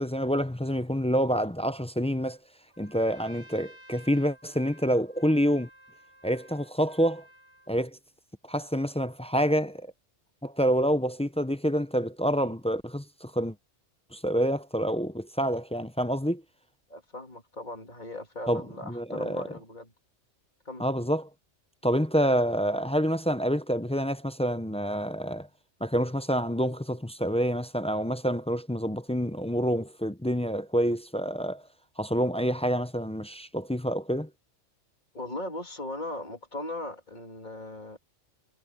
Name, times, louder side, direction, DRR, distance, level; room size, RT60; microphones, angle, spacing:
voice 1, 0.0-2.4 2.8-5.7 6.2-7.2 7.7-8.0 8.4-9.9 10.4-13.6 14.1-16.4 18.5-19.4 20.8-21.3 21.8-25.5 25.8-31.6 32.0-34.3, equal, 10° left, 0.4 m, -27 dB
Trumpet, 2.7-7.7, right 1 dB, 45° right, 5.6 m, -54 dB
voice 2, 16.9-19.9 20.6-20.9 35.1-38.0, left 2 dB, 40° left, 2.7 m, -38 dB
omnidirectional pair, 1.2 m